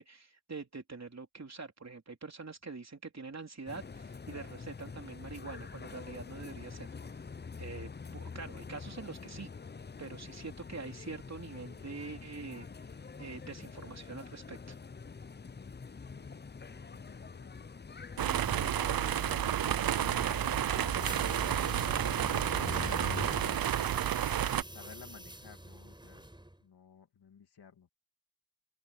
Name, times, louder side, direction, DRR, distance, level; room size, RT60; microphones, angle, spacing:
voice 1, 0.0-7.2 7.6-9.5 10.0-12.7 13.2-14.8, right 4 dB, 45° right, 3.7 m, -45 dB
sound 1, 3.7-23.6, left 5 dB, 25° left, 0.7 m, -45 dB
voice 2, 16.1-18.0 23.5-26.3 26.6-27.9, left 7 dB, 85° left, 2.6 m, -58 dB
sound 2, 18.2-24.6, right 10 dB, 65° right, 0.6 m, -31 dB
sound 3, 21.0-26.6, right 1 dB, 10° right, 5.6 m, -47 dB
open air
cardioid pair, 45°, 38 cm